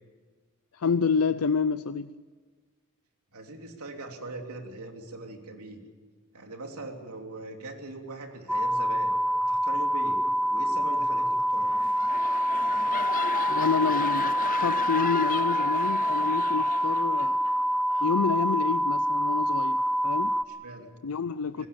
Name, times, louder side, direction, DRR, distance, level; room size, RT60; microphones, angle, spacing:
voice 1, 0.7-2.1 13.5-17.4 18.0-20.4 21.0-21.7, left 5 dB, 70° left, 0.6 m, -28 dB
voice 2, 3.3-5.8 6.3-9.1 9.5-10.2 10.5-11.7 20.5-20.9 21.5-21.7, right 2 dB, 85° right, 3.1 m, -41 dB
sound 1, 8.5-20.4, equal, ahead, 0.9 m, -26 dB
sound 2, 11.6-17.5 17.9-18.2, left 6 dB, 40° left, 0.8 m, -35 dB
27.0 x 18.0 x 7.0 m
head